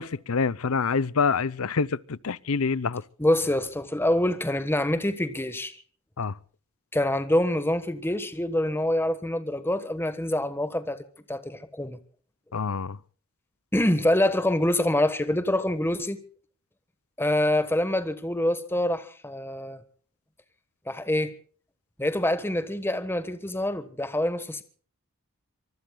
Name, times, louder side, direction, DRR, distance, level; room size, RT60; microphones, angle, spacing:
voice 1, 0.0-3.0 6.2-6.3 12.5-13.0, left 5 dB, 75° left, 0.7 m, -26 dB
voice 2, 3.2-5.8 6.9-12.0 13.7-16.2 17.2-19.8 20.9-21.3 22.0-24.6, left 1 dB, 10° left, 1.3 m, -26 dB
25.0 x 23.5 x 2.3 m
head